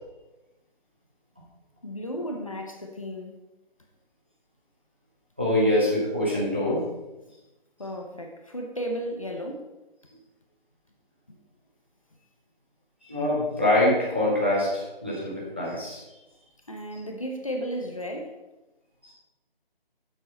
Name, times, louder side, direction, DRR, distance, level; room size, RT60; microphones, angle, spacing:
voice 1, 1.8-3.4 7.8-9.7 11.3-11.4 16.7-18.4, equal, 35° left, 3 dB, 0.9 m, -34 dB
voice 2, 5.4-6.8 13.1-16.0 19.0-19.1, left 1 dB, 10° right, -6 dB, 0.9 m, -24 dB
9.4 x 7.4 x 4.3 m, 1.0 s
figure-of-eight pair, 175°, 30 cm